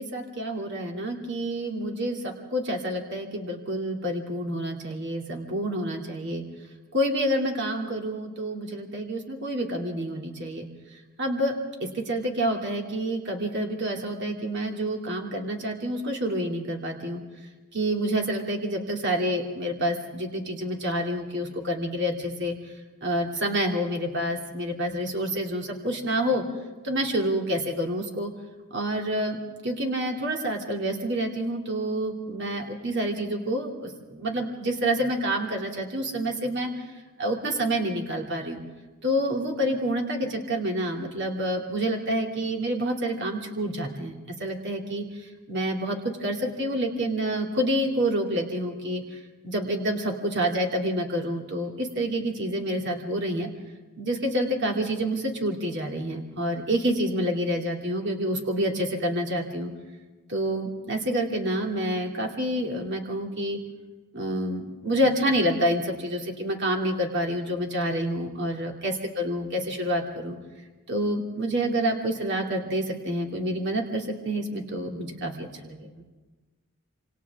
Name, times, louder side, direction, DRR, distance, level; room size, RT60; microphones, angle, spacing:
voice 1, 0.0-6.4 6.9-11.5 11.8-17.2 17.7-22.7 23.0-26.4 26.8-28.3 28.7-36.9 37.2-38.6 39.0-53.5 54.0-59.7 60.3-63.6 64.1-70.4 70.9-76.0, right 1 dB, 55° right, 1 dB, 2.7 m, -28 dB
27.0 x 26.5 x 3.6 m, 1.2 s
head